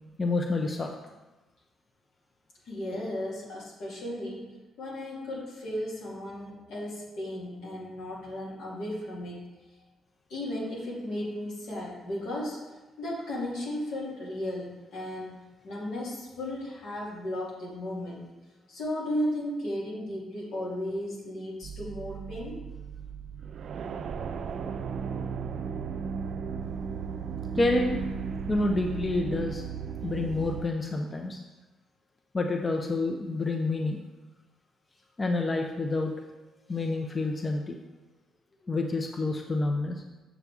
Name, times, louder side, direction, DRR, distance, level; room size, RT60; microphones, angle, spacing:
voice 1, 0.2-0.9 27.6-28.1 28.5-29.6 30.0-31.4 32.3-34.0 35.2-36.1 36.7-37.8 38.7-40.2, left 2 dB, 30° left, 2 dB, 0.6 m, -28 dB
voice 2, 2.7-4.5 4.8-9.4 10.3-12.6 13.0-18.3 18.7-22.6, left 1 dB, 80° left, -5 dB, 2.6 m, -35 dB
sound 1, 21.6-30.7, right 6 dB, 60° right, 0.4 m, -35 dB
7.1 x 6.7 x 3.6 m, 1.1 s
cardioid pair, 90°, 0 cm